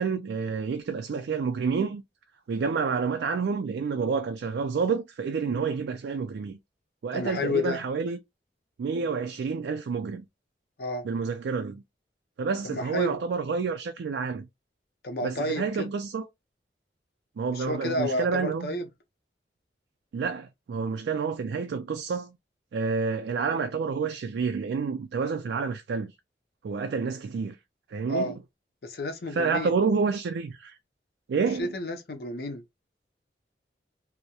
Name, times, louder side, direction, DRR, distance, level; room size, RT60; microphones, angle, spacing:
voice 1, 0.0-2.0 2.5-6.6 7.0-8.2 8.8-10.2 11.0-11.8 12.4-14.5 15.2-16.3 17.4-18.8 20.1-22.4 22.7-26.1 26.6-27.6 27.9-28.4 29.3-30.8 31.3-31.7, right 5 dB, 80° right, 0.3 m, -29 dB
voice 2, 7.1-7.8 10.8-11.0 12.6-13.2 15.0-15.9 17.5-18.8 28.1-28.3 28.8-29.7 31.6-32.6, left 2 dB, 60° left, 0.5 m, -31 dB
2.8 x 2.0 x 2.2 m
head